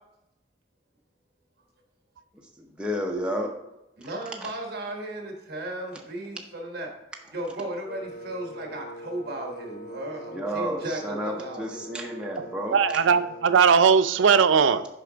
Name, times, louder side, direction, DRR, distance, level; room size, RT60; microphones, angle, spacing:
voice 1, 2.6-3.5 10.3-13.0, equal, 5° right, 0 dB, 0.6 m, -31 dB
voice 2, 4.0-6.9 7.3-11.9, right 1 dB, 55° right, 1 dB, 1.2 m, -35 dB
Wind instrument woodwind instrument, 7.9-13.7, right 1 dB, 45° left, 0.6 m, -42 dB
voice 3, 12.7-14.9, right 6 dB, 80° right, 12 dB, 0.4 m, -19 dB
6.7 x 4.9 x 3.8 m, 0.89 s
head